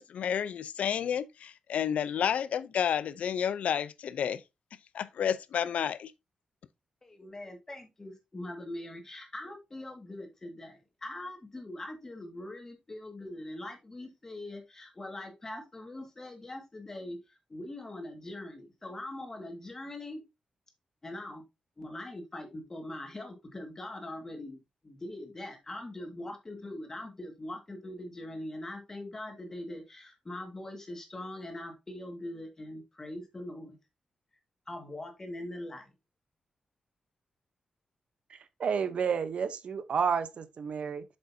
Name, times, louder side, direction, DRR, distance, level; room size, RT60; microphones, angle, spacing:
voice 1, 0.0-4.4 4.9-6.1, left 8 dB, 80° left, 0.5 m, -30 dB
voice 2, 7.0-20.2 21.0-21.4 21.8-33.8 34.7-35.9, left 1 dB, 20° left, 1.9 m, -42 dB
voice 3, 38.6-41.0, right 6 dB, 55° right, 0.8 m, -30 dB
7.8 x 6.6 x 2.7 m
wide cardioid pair, 165°, 2 cm